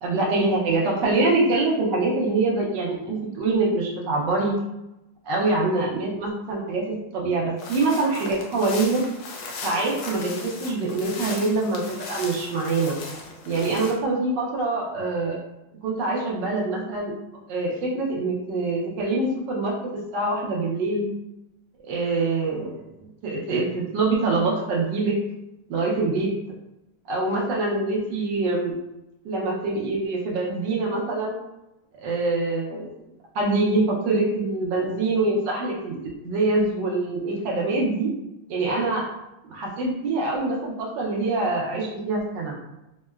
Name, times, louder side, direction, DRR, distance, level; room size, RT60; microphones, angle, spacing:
voice 1, 0.0-4.5 5.2-6.8 7.1-9.0 9.6-13.0 13.5-15.4 15.8-17.1 17.5-19.7 20.1-21.1 21.9-22.8 23.2-25.2 25.7-26.3 27.1-28.7 29.2-31.4 32.0-33.0 33.3-38.1 38.5-39.0 39.4-42.5, right 3 dB, 70° right, -2 dB, 1.2 m, -24 dB
sound 1, 7.6-14.0, left 3 dB, 85° left, 1.4 m, -37 dB
3.6 x 2.1 x 2.2 m, 0.92 s
omnidirectional pair, 2.2 m